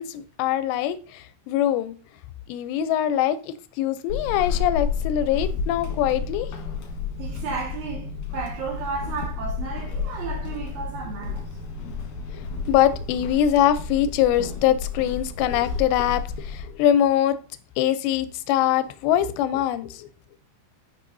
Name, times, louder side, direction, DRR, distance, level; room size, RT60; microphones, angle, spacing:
voice 1, 0.0-2.0 2.5-6.6 12.3-17.4 17.8-20.1, left 11 dB, 80° left, 2.6 m, -23 dB
Walk footsteps / Squeak, 4.1-16.8, left 5 dB, 65° left, 2.1 m, -31 dB
voice 2, 7.2-11.5, right 5 dB, 60° right, 2.9 m, -33 dB
11.0 x 5.2 x 2.6 m
omnidirectional pair, 5.3 m